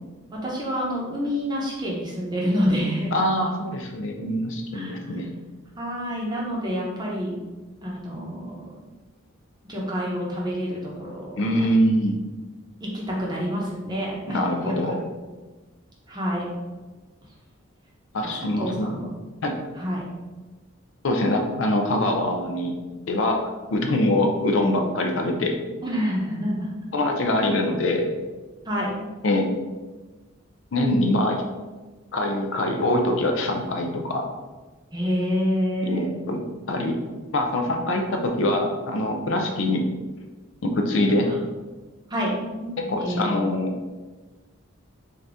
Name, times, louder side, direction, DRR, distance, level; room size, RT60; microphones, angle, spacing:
voice 1, 0.3-3.1 4.7-5.1 5.8-7.3 7.8-8.6 9.7-11.2 12.8-15.0 16.1-16.5 18.2-19.1 19.8-20.1 25.8-26.7 27.3-27.5 28.6-28.9 34.9-36.2 41.2-41.3 42.1-42.3 42.6-43.6, equal, 20° right, -4 dB, 0.8 m, -28 dB
voice 2, 3.1-5.3 11.4-12.2 14.3-15.0 18.1-18.9 19.4-19.5 21.0-22.7 23.1-23.4 23.7-25.6 26.9-28.1 29.2-29.5 30.7-31.4 32.1-34.3 35.8-36.4 36.7-37.0 37.3-39.8 40.6-41.3 42.8-43.7, left 1 dB, 60° left, 3 dB, 0.5 m, -23 dB
3.7 x 2.7 x 3.4 m, 1.2 s
head